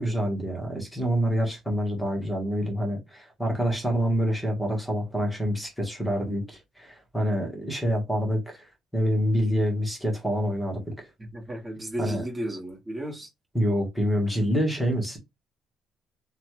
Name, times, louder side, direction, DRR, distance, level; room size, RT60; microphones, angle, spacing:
voice 1, 0.0-8.7 8.9-11.1 12.0-12.2 13.5-15.2, equal, ahead, 1.1 m, -27 dB
voice 2, 11.2-13.3, right 1 dB, 20° right, 1.3 m, -34 dB
3.2 x 2.2 x 2.9 m
cardioid pair, 150°, 0 cm